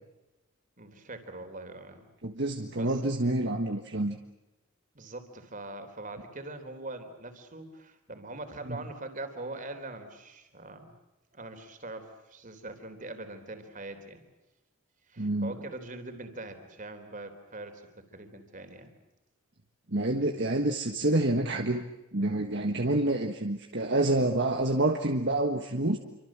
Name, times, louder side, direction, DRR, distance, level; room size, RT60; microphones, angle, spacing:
voice 1, 0.8-2.1 2.8-3.0 4.9-10.9 11.3-14.2 15.1-18.9, right 2 dB, 40° right, 7 dB, 3.8 m, -42 dB
voice 2, 2.2-4.2 15.2-15.6 19.9-21.8 22.1-26.0, right 2 dB, 55° right, 4 dB, 1.6 m, -27 dB
28.0 x 25.0 x 7.6 m, 1.0 s
head